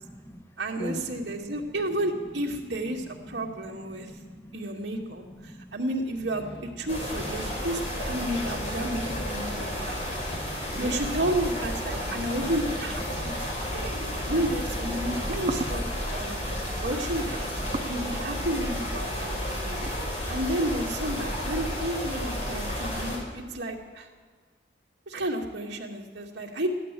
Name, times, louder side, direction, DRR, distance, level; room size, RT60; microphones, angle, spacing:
voice 1, 0.0-0.4 0.8-1.7 2.9-4.6 5.1-5.7 6.8-6.9 7.5-7.7 8.2-10.4 10.7-11.0 11.9-12.3 16.1-16.9 17.4-17.9 18.3-18.4 18.9-19.0, equal, 15° left, 5 dB, 1.1 m, -45 dB
voice 2, 0.6-4.1 4.5-6.5 6.8-10.0 10.8-16.4 16.8-17.4 17.9-19.8 20.3-24.1 25.1-26.7, right 1 dB, 85° right, 0 dB, 2.3 m, -31 dB
sound 1, 5.8-15.4, right 1 dB, 80° left, 4.1 m, -46 dB
sound 2, 6.9-23.2, equal, 40° left, 5.1 m, -32 dB
sound 3, 13.8-20.9, right 2 dB, 35° right, 0.6 m, -39 dB
15.0 x 11.5 x 7.6 m, 1.5 s
head